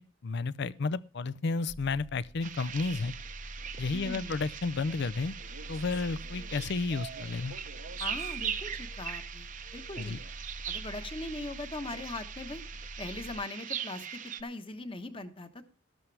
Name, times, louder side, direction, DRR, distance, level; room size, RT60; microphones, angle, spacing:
voice 1, 0.2-3.1 3.8-5.3 5.7-7.5 10.0-10.2, left 4 dB, 55° left, 0.5 m, -32 dB
sound 1, 1.7-13.4, equal, 10° left, 0.7 m, -46 dB
sound 2, 2.4-14.4, right 8 dB, 40° right, 0.8 m, -41 dB
voice 2, 3.9-4.4 8.0-10.2 10.7-12.6 13.0-15.6, left 2 dB, 25° left, 1.2 m, -40 dB
Male speech man speaking, 5.3-8.4 9.8-10.5, right 4 dB, 75° right, 1.0 m, -53 dB
13.0 x 12.5 x 3.4 m
head